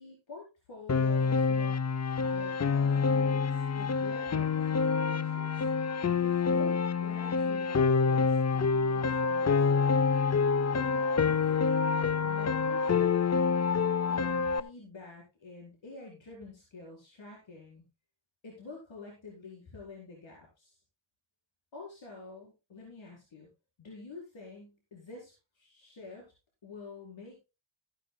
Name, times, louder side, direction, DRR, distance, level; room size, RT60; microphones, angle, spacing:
voice 1, 0.0-1.8 2.1-5.5 6.2-10.2 10.7-11.7 12.2-13.1 14.1-17.9 18.4-20.8 21.7-23.5 23.8-26.3 26.6-27.4, left 3 dB, 65° left, -3 dB, 4.8 m, -48 dB
Piano, 0.9-14.6, left 5 dB, 35° left, 0.5 m, -27 dB
15.0 x 11.0 x 2.3 m, 0.28 s
wide cardioid pair, 170°, 49 cm